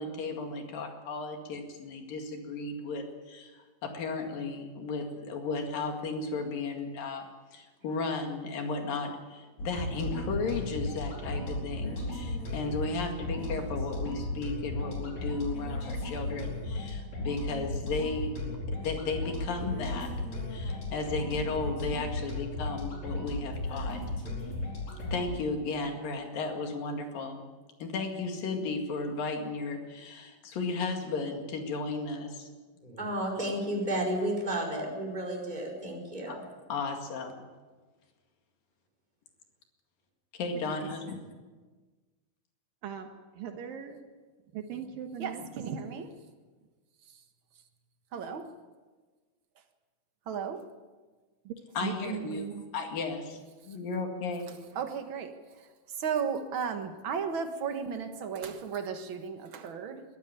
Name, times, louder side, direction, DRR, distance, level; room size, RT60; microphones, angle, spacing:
voice 1, 0.0-3.5 3.8-7.3 7.5-20.1 20.5-24.0 25.1-27.4 27.8-32.5 36.3-36.4 36.7-37.4 40.4-41.2 51.8-52.5 52.7-53.4 53.7-54.5, left 3 dB, 75° left, 4 dB, 3.9 m, -34 dB
sound 1, 9.6-25.3, left 1 dB, 50° left, 5.9 m, -35 dB
voice 2, 32.8-36.4, right 1 dB, 10° right, -1 dB, 4.4 m, -32 dB
voice 3, 40.5-41.2 42.8-43.1 43.3-44.0 44.5-46.0 51.4-51.5 51.8-52.6, right 8 dB, 75° right, 5 dB, 3.0 m, -39 dB
voice 4, 45.2-46.1 48.1-48.5 50.3-50.7 54.5-60.0, right 6 dB, 50° right, 6 dB, 1.7 m, -35 dB
22.5 x 13.0 x 9.0 m, 1.3 s
omnidirectional pair, 4.1 m